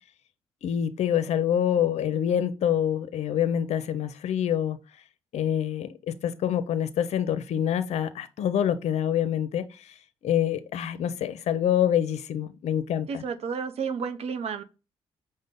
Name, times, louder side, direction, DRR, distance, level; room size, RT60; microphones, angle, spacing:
voice 1, 0.6-4.8 5.3-9.9 10.2-13.2, left 9 dB, 70° left, 0.5 m, -26 dB
voice 2, 13.1-14.6, right 6 dB, 65° right, 0.6 m, -31 dB
5.2 x 2.1 x 3.5 m
supercardioid pair, 55°, 12 cm